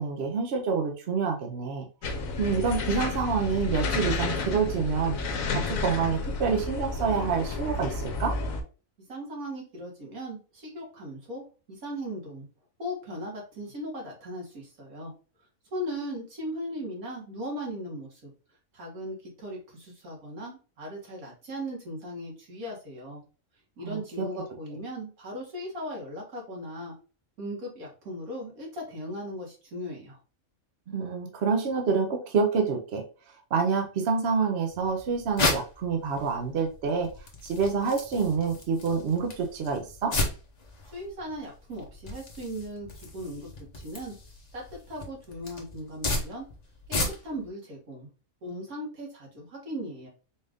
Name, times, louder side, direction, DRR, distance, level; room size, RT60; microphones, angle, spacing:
voice 1, 0.0-1.9 2.4-5.2 5.5-8.3 23.8-24.3 30.9-33.0 33.5-37.1 37.4-40.1, right 5 dB, 55° right, 3 dB, 0.9 m, -27 dB
sound 1, 2.0-8.6, left 3 dB, 70° left, 1.2 m, -31 dB
voice 2, 9.1-12.5 12.8-15.1 15.7-18.3 18.7-23.2 23.8-26.9 27.4-30.2 40.9-44.2 44.5-46.5 46.9-48.1 48.4-50.1, equal, 80° right, -2 dB, 2.0 m, -38 dB
sound 2, 34.7-47.5, left 2 dB, 35° left, 0.8 m, -35 dB
4.2 x 2.5 x 3.5 m, 0.35 s
omnidirectional pair, 1.5 m